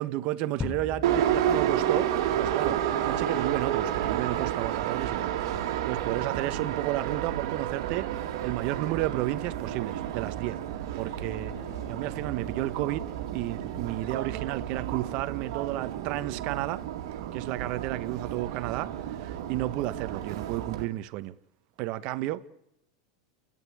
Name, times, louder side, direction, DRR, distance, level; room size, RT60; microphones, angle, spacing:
voice 1, 0.0-10.6 10.9-11.6 11.9-16.8 17.3-21.4 21.8-22.5, right 16 dB, 50° right, 1.2 m, -32 dB
sound 1, 0.6-2.6, left 5 dB, 20° left, 0.7 m, -39 dB
Subway metro underground, 1.0-20.8, right 10 dB, 75° right, 2.0 m, -31 dB
Bowed string instrument, 11.0-14.1, left 6 dB, 75° left, 4.5 m, -51 dB
30.0 x 10.5 x 8.9 m
supercardioid pair, 120°, 2 cm